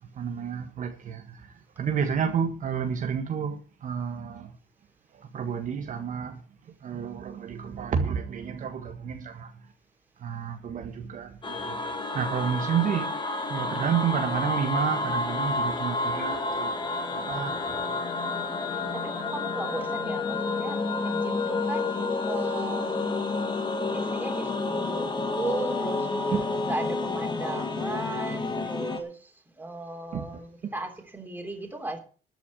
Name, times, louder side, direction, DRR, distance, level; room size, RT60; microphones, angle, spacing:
voice 1, 0.0-4.5 5.1-9.7 10.2-13.1 13.5-16.8 17.1-18.0 26.3-26.5 30.1-30.7, right 7 dB, 50° right, 1.5 m, -31 dB
sound 1, 11.4-29.0, left 3 dB, 30° left, 2.2 m, -30 dB
voice 2, 18.7-22.0 22.2-23.3 23.8-26.2 26.6-32.0, right 2 dB, 10° right, 3.5 m, -36 dB
13.0 x 6.1 x 8.4 m
cardioid pair, 110°, 17 cm